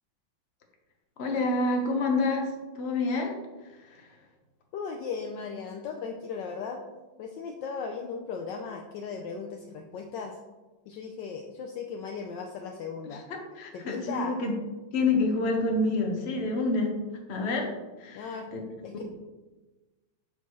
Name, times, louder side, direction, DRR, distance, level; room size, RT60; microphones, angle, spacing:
voice 1, 1.2-3.4 3.8-4.1 13.1-13.2 13.5-14.5 14.9-16.9 17.3-17.7 18.0-18.6, left 2 dB, 40° left, 1 dB, 1.1 m, -28 dB
voice 2, 4.7-6.8 7.2-10.4 10.9-13.2 13.7-14.4 18.1-18.5 18.8-19.0, left 5 dB, 75° left, 3 dB, 1.1 m, -37 dB
6.9 x 6.4 x 3.1 m, 1.2 s
omnidirectional pair, 2.3 m